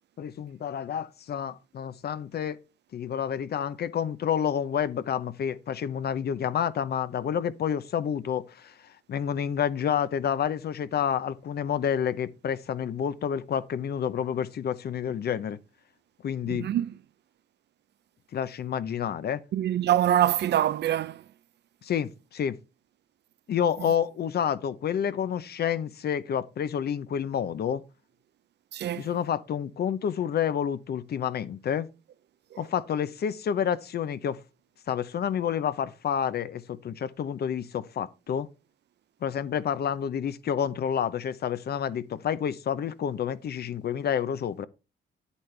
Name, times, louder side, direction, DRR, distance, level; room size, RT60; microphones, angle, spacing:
voice 1, 0.2-2.6 2.9-15.6 16.2-16.7 18.3-19.4 21.8-22.6 23.5-27.8 29.0-31.9 32.6-34.4 34.9-38.5 39.2-44.7, left 8 dB, 55° left, 0.7 m, -29 dB
voice 2, 16.5-16.9 19.5-21.2 28.7-29.1, right 12 dB, 60° right, 0.5 m, -24 dB
9.5 x 8.4 x 3.3 m
cardioid pair, 90°, 20 cm